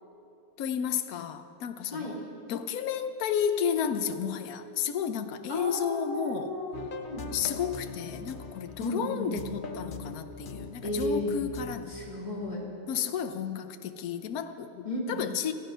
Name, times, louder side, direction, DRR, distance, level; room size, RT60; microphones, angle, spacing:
voice 1, 0.6-2.2 2.5-6.6 7.3-12.0 12.9-15.5, left 8 dB, 65° left, 9 dB, 1.2 m, -32 dB
voice 2, 5.5-7.2 8.8-9.4 10.8-11.3 11.9-12.7 14.8-15.2, left 1 dB, 25° left, -3 dB, 3.0 m, -33 dB
sound 1, 6.7-11.8, left 4 dB, 40° left, 0.8 m, -41 dB
27.5 x 9.5 x 5.6 m, 2.8 s
omnidirectional pair, 1.8 m